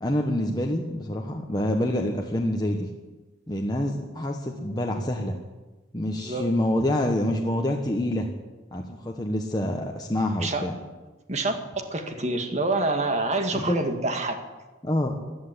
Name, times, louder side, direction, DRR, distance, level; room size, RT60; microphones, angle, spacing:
voice 1, 0.0-2.9 3.5-5.4 5.9-8.3 8.7-10.7 13.5-13.8 14.8-15.2, left 1 dB, 20° left, 1 dB, 1.1 m, -27 dB
voice 2, 11.3-14.4, right 2 dB, 35° right, 5 dB, 1.8 m, -27 dB
16.0 x 11.0 x 8.3 m, 1.2 s
head